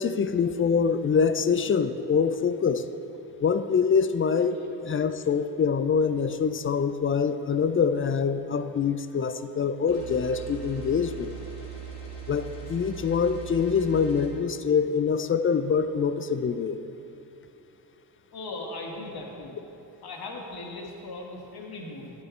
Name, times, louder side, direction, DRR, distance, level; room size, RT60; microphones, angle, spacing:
voice 1, 0.0-2.9 3.4-11.3 12.3-16.8, left 6 dB, 25° left, 11 dB, 0.5 m, -25 dB
sound 1, 9.9-14.3, right 7 dB, 80° left, 1.7 m, -40 dB
voice 2, 18.3-19.6 20.0-22.1, left 2 dB, 50° left, 0 dB, 1.9 m, -38 dB
11.0 x 9.5 x 3.3 m, 3.0 s
hypercardioid pair, 45°, 48 cm